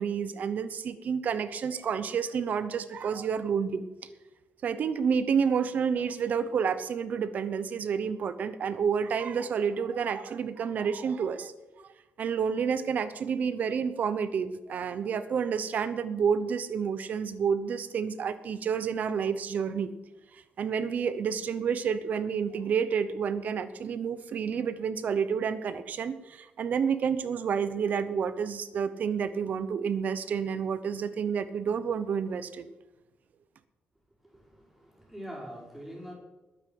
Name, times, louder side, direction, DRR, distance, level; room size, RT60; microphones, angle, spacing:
voice 1, 0.0-3.8 4.6-11.5 11.8-11.9 12.2-19.9 20.3-32.7, right 6 dB, 50° right, 12 dB, 1.0 m, -29 dB
voice 2, 34.8-36.1, equal, 5° right, -3 dB, 4.9 m, -42 dB
21.0 x 8.9 x 5.5 m, 1.1 s
wide cardioid pair, 175°, 4 cm